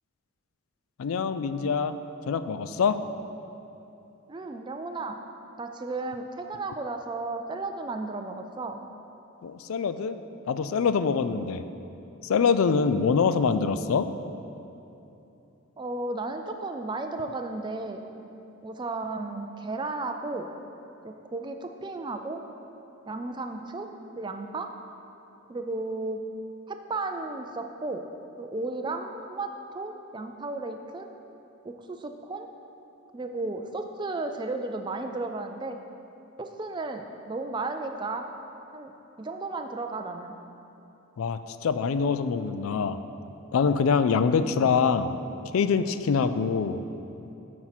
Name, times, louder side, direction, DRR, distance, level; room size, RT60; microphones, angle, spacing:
voice 1, 1.0-2.0 2.3-3.0 9.4-10.2 10.5-11.6 12.2-14.1 41.2-43.0 43.5-45.1 45.5-46.8, left 5 dB, 75° left, 11 dB, 0.3 m, -24 dB
voice 2, 4.3-5.2 5.6-8.8 15.8-18.0 18.6-20.5 21.0-22.4 23.1-23.9 24.2-24.7 25.5-26.2 26.7-28.0 28.4-31.1 31.6-32.5 33.1-35.8 36.4-38.3 38.7-38.9 39.2-40.4, right 3 dB, 20° right, 5 dB, 0.3 m, -34 dB
8.9 x 4.2 x 5.9 m, 2.9 s
head